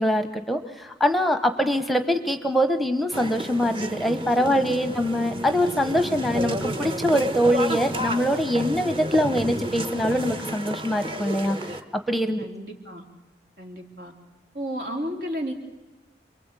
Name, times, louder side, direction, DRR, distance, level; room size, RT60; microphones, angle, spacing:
voice 1, 0.0-11.6 12.1-12.5, equal, ahead, 8 dB, 0.9 m, -23 dB
sound 1, 3.1-11.8, equal, 30° right, 1.3 m, -31 dB
voice 2, 12.4-13.0 13.6-14.1 14.5-15.5, equal, 70° right, 3 dB, 3.5 m, -33 dB
28.0 x 22.5 x 8.3 m, 1.1 s
head